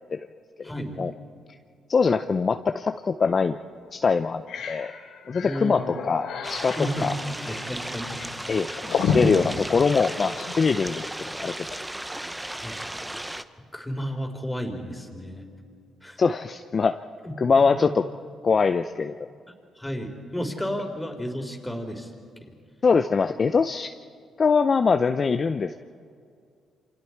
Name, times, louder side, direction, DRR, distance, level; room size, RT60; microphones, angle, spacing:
voice 1, 0.6-1.0 5.4-5.9 6.8-7.1 7.4-8.2 12.5-12.8 13.7-15.5 16.0-16.2 17.2-17.9 19.8-22.1, equal, 10° left, 3 dB, 3.7 m, -32 dB
voice 2, 1.9-3.6 3.9-4.9 5.3-7.1 8.5-8.7 9.1-11.1 11.4-11.6 16.2-17.0 17.4-18.0 18.4-19.1 22.8-23.9 24.4-25.8, left 5 dB, 40° left, 8 dB, 0.6 m, -22 dB
sound 1, 3.2-3.4 3.8-3.9 4.2-10.6, left 5 dB, 80° left, 3.3 m, -31 dB
sound 2, 6.4-13.4, right 1 dB, 10° right, 0.9 m, -35 dB
28.5 x 26.5 x 4.6 m, 2.3 s
cardioid pair, 90°, 0 cm